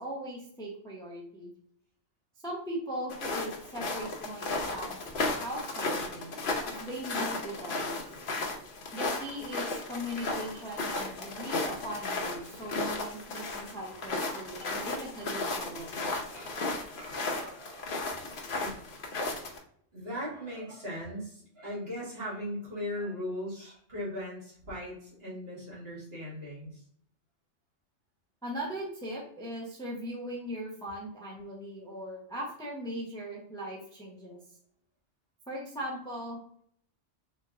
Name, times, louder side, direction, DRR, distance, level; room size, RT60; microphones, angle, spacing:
voice 1, 0.0-1.5 2.4-6.3 6.8-8.1 8.9-16.2 28.4-34.4 35.5-36.6, equal, 5° left, -3 dB, 0.7 m, -39 dB
sound 1, 3.1-19.6, left 3 dB, 50° left, 0.8 m, -35 dB
voice 2, 12.4-13.2 14.6-15.1 16.3-16.6 16.9-18.8 19.9-26.8, left 1 dB, 55° right, -6 dB, 1.9 m, -40 dB
3.4 x 3.1 x 3.6 m, 0.63 s
omnidirectional pair, 1.2 m